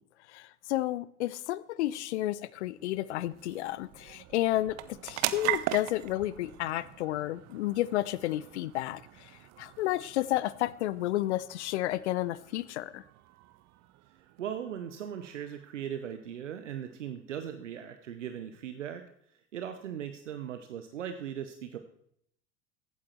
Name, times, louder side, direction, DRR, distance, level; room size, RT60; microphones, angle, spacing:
voice 1, 0.3-9.3 9.6-13.0, left 15 dB, 65° left, 19 dB, 0.6 m, -31 dB
sound 1, 1.8-16.6, right 16 dB, 45° right, 0.8 m, -41 dB
voice 2, 14.1-19.0 19.3-21.8, right 9 dB, 75° right, 8 dB, 1.0 m, -39 dB
15.0 x 8.7 x 4.4 m, 0.69 s
figure-of-eight pair, 75°, 37 cm